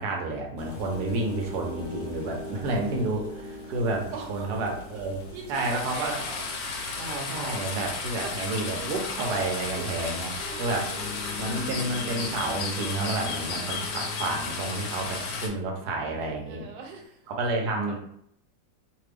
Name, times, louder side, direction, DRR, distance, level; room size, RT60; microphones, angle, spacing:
voice 1, 0.0-5.2 5.5-6.2 7.0-10.9 11.4-16.6 17.3-18.0, right 2 dB, 70° right, 1 dB, 1.2 m, -30 dB
Boiling, 0.6-12.4, equal, 65° left, 1.3 m, -46 dB
sound 1, 0.9-9.0 10.4-17.0, left 3 dB, 35° left, 1.1 m, -42 dB
voice 2, 4.1-4.5 5.3-6.5 8.2-8.3 9.5-10.6 13.5-14.1 16.4-17.3 17.6-18.0, right 5 dB, 85° right, 3 dB, 1.3 m, -42 dB
sound 2, 5.5-15.5, left 4 dB, 85° left, 1.4 m, -34 dB
3.3 x 2.3 x 3.3 m, 0.69 s
omnidirectional pair, 2.0 m